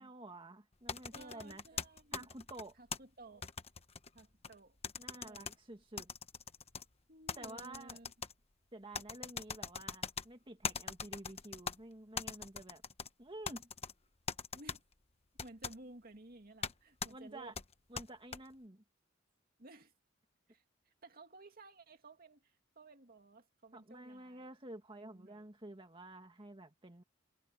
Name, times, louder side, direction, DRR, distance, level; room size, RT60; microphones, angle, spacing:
voice 1, 0.0-1.6 2.1-2.7 5.0-6.1 7.4-8.0 8.7-12.8 13.2-13.7 17.1-17.5 17.9-18.8 23.7-27.0, right 2 dB, 25° right, 2.0 m, -50 dB
sound 1, 0.9-3.0 3.4-4.5 4.8-5.5 6.0-6.8 7.3-8.3 8.9-10.3 10.6-11.8 12.2-13.1 13.5-13.9 14.3-14.8 15.4-15.8 16.6-16.7 17.0-17.1 17.6-18.4, left 6 dB, 30° left, 1.2 m, -41 dB
voice 2, 1.1-2.3 2.8-3.5 4.1-4.8 5.1-5.6 7.1-8.1 14.5-14.8 15.4-17.5 19.6-19.9 20.5-24.6 25.0-25.4, right 2 dB, 50° right, 2.4 m, -56 dB
head